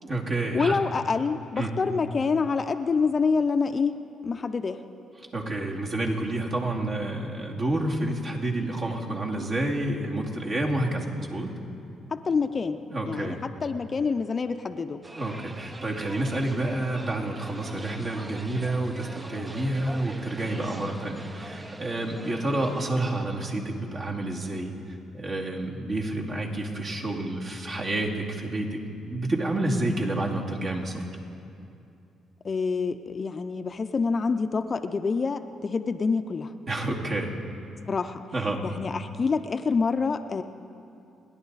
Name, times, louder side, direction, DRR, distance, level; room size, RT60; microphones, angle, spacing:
voice 1, 0.0-0.8 1.6-1.7 5.3-11.5 12.9-13.4 15.1-24.7 25.1-31.0 36.7-37.3 38.3-38.6, right 1 dB, 50° right, -2 dB, 2.5 m, -29 dB
voice 2, 0.5-3.9 4.2-4.8 12.1-15.0 32.4-36.5 37.9-38.2 38.6-40.4, left 5 dB, 35° left, 9 dB, 0.6 m, -27 dB
sound 1, 15.0-22.9, right 2 dB, 20° right, 0.7 m, -43 dB
30.0 x 11.0 x 4.1 m, 2.6 s
cardioid pair, 90°, 0 cm